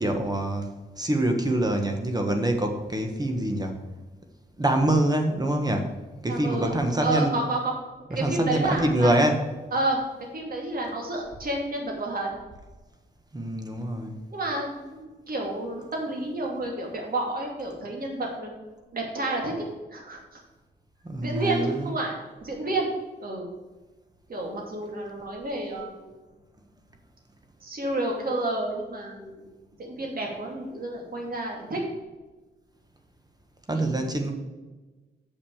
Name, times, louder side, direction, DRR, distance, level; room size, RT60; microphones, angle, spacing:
voice 1, 0.0-3.8 4.6-5.9 6.2-7.4 8.1-9.4 13.3-14.2 21.0-21.9 33.7-34.3, right 1 dB, 20° right, 4 dB, 1.3 m, -25 dB
voice 2, 6.3-7.7 8.1-9.2 9.7-10.0 10.3-12.3 14.3-18.5 18.9-19.5 19.9-20.4 21.2-22.1 22.4-22.9 23.2-23.5 24.3-26.1 27.6-29.5 29.8-31.8 33.7-34.1, right 2 dB, 55° right, 0 dB, 2.7 m, -30 dB
6.8 x 6.0 x 7.1 m, 1.2 s
cardioid pair, 75°, 17 cm